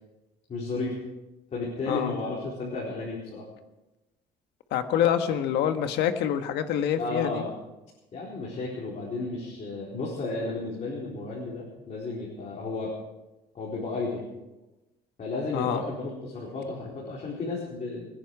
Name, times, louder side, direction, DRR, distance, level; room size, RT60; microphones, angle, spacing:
voice 1, 0.5-1.0 1.5-3.4 7.0-7.5 8.1-13.0 13.5-14.3 15.2-18.1, left 3 dB, 45° left, -5 dB, 4.4 m, -33 dB
voice 2, 4.7-7.4 15.5-15.8, left 9 dB, 85° left, 8 dB, 1.4 m, -26 dB
27.5 x 10.0 x 4.8 m, 1.0 s
cardioid pair, 110°, 17 cm